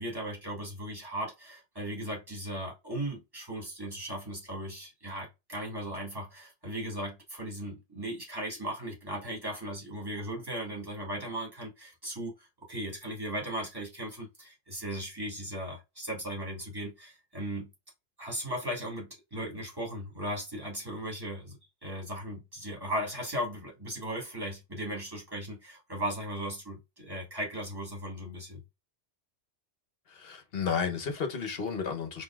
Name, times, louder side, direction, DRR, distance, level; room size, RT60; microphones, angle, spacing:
voice 1, 0.0-17.7 18.2-28.6, right 1 dB, 20° right, 1.9 m, -37 dB
voice 2, 30.1-32.2, left 6 dB, 60° left, 1.1 m, -32 dB
5.2 x 2.8 x 2.3 m
omnidirectional pair, 1.2 m